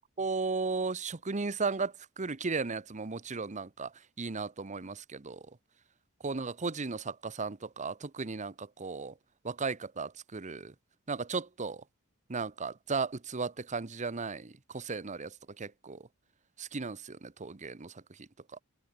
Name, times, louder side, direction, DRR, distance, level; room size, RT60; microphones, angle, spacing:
voice 1, 0.2-5.4 6.2-9.1 9.4-10.7 11.1-11.8 12.3-16.0 16.6-18.3, right 4 dB, 35° right, 0.9 m, -35 dB
open air
head